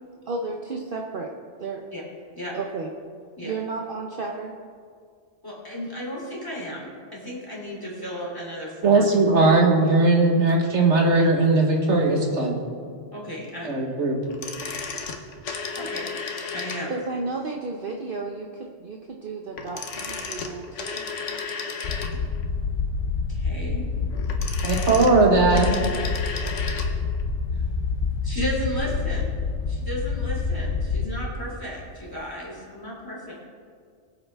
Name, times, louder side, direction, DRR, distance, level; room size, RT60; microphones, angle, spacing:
voice 1, 0.3-1.3 1.6-1.8 2.5-2.9 3.4-4.5 16.9-21.1, right 3 dB, 50° right, 1 dB, 1.0 m, -32 dB
voice 2, 5.4-9.1 11.6-11.7 13.1-13.7 15.8-16.1 16.5-16.9 23.3-23.8 25.6-25.9 27.5-27.6 28.2-29.4 29.7-33.3, equal, 20° left, -4 dB, 3.1 m, -34 dB
voice 3, 8.8-12.6 13.6-14.2 24.6-25.8, right 3 dB, 75° right, 1 dB, 1.7 m, -19 dB
sound 1, 14.3-17.1 19.5-22.4 24.1-26.9 27.2-27.3, left 5 dB, 90° left, 1.4 m, -33 dB
sound 2, 21.8-31.1, left 4 dB, 75° left, 1.2 m, -27 dB
22.0 x 8.0 x 3.5 m, 2.1 s
omnidirectional pair, 1.2 m